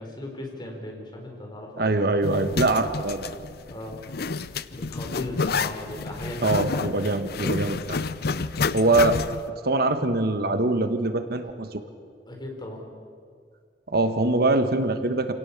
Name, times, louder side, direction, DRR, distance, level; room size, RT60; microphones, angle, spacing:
voice 1, 0.0-2.0 3.7-4.0 4.7-6.6 12.2-12.8, left 1 dB, 25° left, 1 dB, 4.5 m, -37 dB
voice 2, 1.8-3.3 6.4-8.0 8.7-9.2 9.5-11.8 13.9-15.3, right 2 dB, 60° right, 9 dB, 1.3 m, -23 dB
Zipper (clothing), 2.2-9.5, left 4 dB, 60° left, 0.6 m, -29 dB
27.5 x 17.5 x 7.2 m, 2.2 s
head